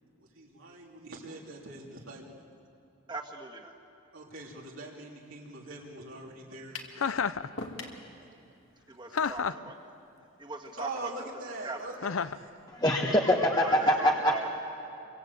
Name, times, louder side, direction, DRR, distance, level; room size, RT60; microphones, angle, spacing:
voice 1, 0.2-2.4 4.1-7.1 10.8-12.6, right 2 dB, 80° right, -3 dB, 3.2 m, -43 dB
voice 2, 3.1-3.7 8.9-9.7 10.4-10.9 11.6-11.8 13.6-14.5, right 3 dB, 20° right, 1 dB, 2.0 m, -40 dB
sound 1, 6.7-7.0 7.6-8.0, left 3 dB, 60° left, 2.4 m, -39 dB
Chuckle chortle, 7.0-7.5 9.1-9.7 12.0-12.4, left 6 dB, 80° left, 0.6 m, -30 dB
voice 3, 12.7-14.5, equal, 20° left, 0 dB, 1.3 m, -24 dB
28.5 x 24.5 x 8.4 m, 2.7 s
head